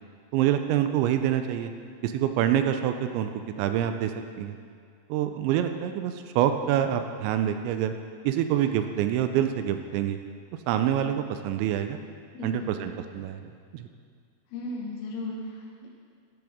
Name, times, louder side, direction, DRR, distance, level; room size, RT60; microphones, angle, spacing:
voice 1, 0.3-1.7 2.0-3.3 3.6-4.6 5.1-7.9 8.2-10.2 10.7-12.0 12.4-13.9, right 10 dB, 85° right, 8 dB, 2.7 m, -26 dB
voice 2, 12.3-12.7 14.5-15.9, left 2 dB, 80° left, -3 dB, 3.6 m, -36 dB
12.5 x 12.0 x 3.6 m, 2.2 s
omnidirectional pair, 5.6 m